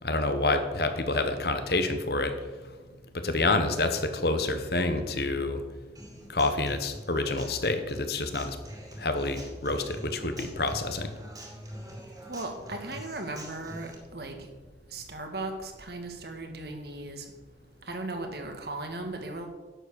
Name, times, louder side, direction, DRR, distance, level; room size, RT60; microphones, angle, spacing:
voice 1, 0.0-2.8 3.1-5.6 6.3-8.6 9.0-11.1, left 2 dB, 60° left, 8 dB, 1.3 m, -28 dB
Human voice / Acoustic guitar, 5.9-13.9, right 1 dB, 20° right, 2.5 m, -45 dB
voice 2, 12.3-14.4 14.9-17.3 17.8-19.5, right 2 dB, 60° right, 4 dB, 1.9 m, -37 dB
11.0 x 7.5 x 7.1 m, 1.3 s
head